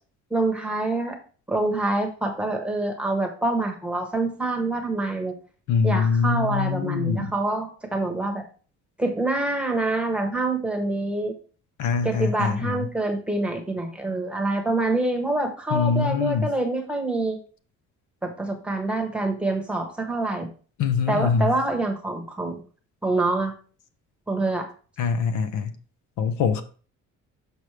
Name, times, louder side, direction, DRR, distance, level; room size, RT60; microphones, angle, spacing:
voice 1, 0.3-1.2 1.5-5.3 5.8-8.4 9.0-11.3 12.0-17.4 18.2-20.5 21.1-22.6 23.0-23.5 24.3-24.7, right 2 dB, 5° right, 1.0 m, -26 dB
voice 2, 5.7-7.3 11.8-12.9 15.7-16.5 20.8-21.6 25.0-25.8 26.2-26.6, left 6 dB, 75° left, 0.8 m, -24 dB
6.4 x 6.1 x 3.3 m
cardioid pair, 160°, 30 cm